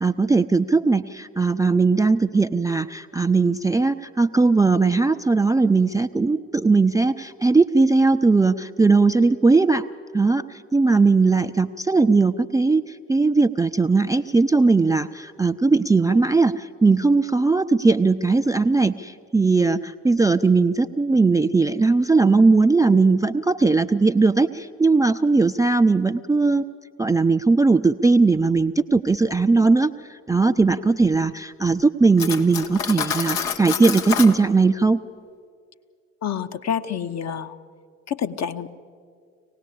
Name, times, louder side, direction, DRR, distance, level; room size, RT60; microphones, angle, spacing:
voice 1, 0.0-9.8 10.1-26.6 27.0-35.0, right 3 dB, 10° right, 9 dB, 0.5 m, -19 dB
Cutlery silverware, 32.2-34.4, left 7 dB, 75° left, 1.4 m, -27 dB
voice 2, 36.2-37.6 38.1-38.7, left 8 dB, 40° left, 9 dB, 1.1 m, -28 dB
25.0 x 18.0 x 8.4 m, 2.2 s
figure-of-eight pair, 50°, 40 cm